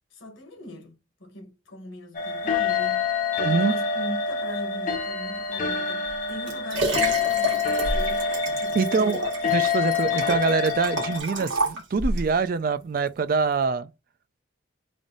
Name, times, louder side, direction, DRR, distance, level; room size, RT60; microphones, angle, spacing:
voice 1, 0.1-3.1 3.5-8.3 8.5-9.3, left 1 dB, 75° left, 1.3 m, -39 dB
sound 1, 2.1-11.2, left 5 dB, 40° left, 0.7 m, -26 dB
voice 2, 3.4-3.7 8.8-13.9, right 4 dB, 45° right, 0.3 m, -25 dB
Liquid, 6.1-12.3 13.0-13.1, right 1 dB, 75° right, 1.5 m, -30 dB
3.4 x 2.6 x 3.8 m
head